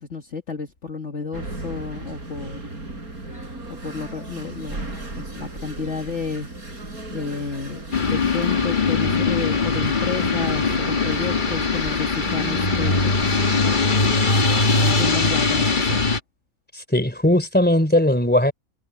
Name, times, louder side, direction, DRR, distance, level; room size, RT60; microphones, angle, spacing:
voice 1, 0.0-2.6 3.7-6.5 7.1-7.8 8.1-13.1 14.7-16.1, left 5 dB, 55° left, 2.1 m, -31 dB
sound 1, 1.3-14.6, right 2 dB, 85° right, 5.9 m, -35 dB
sound 2, 7.9-16.2, left 4 dB, 35° left, 1.7 m, -21 dB
voice 2, 16.7-18.5, left 1 dB, 5° left, 3.4 m, -19 dB
omnidirectional pair, 1.5 m